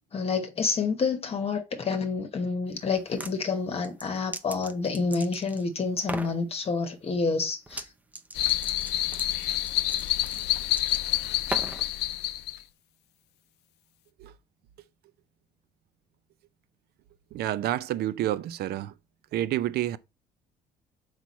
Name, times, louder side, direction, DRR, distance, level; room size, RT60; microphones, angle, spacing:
voice 1, 0.1-7.9, left 4 dB, 35° left, 1.1 m, -28 dB
sound 1, 3.0-3.3 3.8-5.6 6.0-6.4 7.7-7.9 8.1-11.9, right 1 dB, 10° right, 0.6 m, -38 dB
sound 2, 8.3-12.6, left 15 dB, 80° left, 0.5 m, -28 dB
voice 2, 17.3-18.9 19.3-20.0, right 13 dB, 70° right, 0.6 m, -29 dB
6.0 x 4.9 x 4.2 m
cardioid pair, 110°, 17 cm